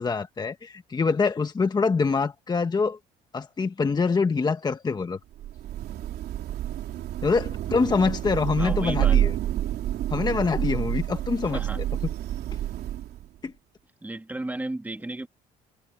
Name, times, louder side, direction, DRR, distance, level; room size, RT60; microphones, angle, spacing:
voice 1, 0.0-3.0 3.3-5.2 7.2-9.3 10.1-11.8 13.4-13.5, left 4 dB, 25° left, 1.2 m, -25 dB
Thunder / Rain, 5.3-13.4, right 12 dB, 70° right, 3.3 m, -28 dB
voice 2, 8.6-9.2 11.4-11.8 14.0-15.3, right 2 dB, 10° right, 3.0 m, -34 dB
cardioid pair, 110°, 17 cm